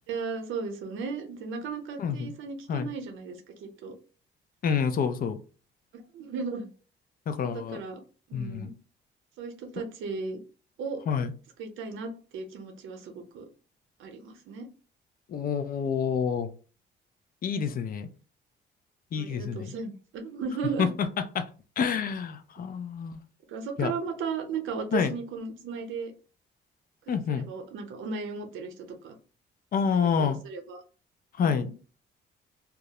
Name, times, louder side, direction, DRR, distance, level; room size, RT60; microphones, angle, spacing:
voice 1, 0.1-3.9 5.9-6.7 7.4-8.0 8.3-8.7 9.4-10.4 10.8-11.0 11.6-13.5 14.0-14.7 19.1-20.9 23.5-26.1 27.1-29.2 29.8-30.8 31.4-31.7, right 5 dB, 80° right, 4 dB, 0.7 m, -36 dB
voice 2, 2.0-2.3 2.7-2.9 4.6-5.4 7.3-7.8 8.3-8.7 11.1-11.3 15.3-16.5 17.4-18.1 19.1-19.7 20.8-21.1 21.4-21.5 21.8-23.2 23.8-23.9 24.9-25.1 27.1-27.5 29.7-30.4 31.4-31.7, left 6 dB, 45° left, 9 dB, 0.4 m, -28 dB
2.3 x 2.0 x 2.8 m, 0.37 s
cardioid pair, 90°, 20 cm